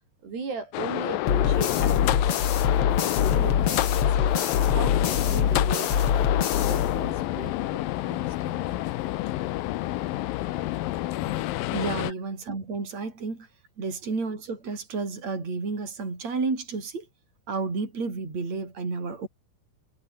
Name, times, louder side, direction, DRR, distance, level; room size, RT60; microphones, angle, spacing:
voice 1, 0.2-6.4 6.7-8.9, right 4 dB, 85° right, 9.3 m, -38 dB
sound 1, 0.7-12.1, left 16 dB, 75° left, 2.4 m, -28 dB
sound 2, 1.3-7.4, left 8 dB, 45° left, 2.1 m, -24 dB
voice 2, 11.7-13.5 13.8-17.1 17.5-19.3, right 4 dB, 40° right, 7.6 m, -31 dB
omnidirectional pair, 4.6 m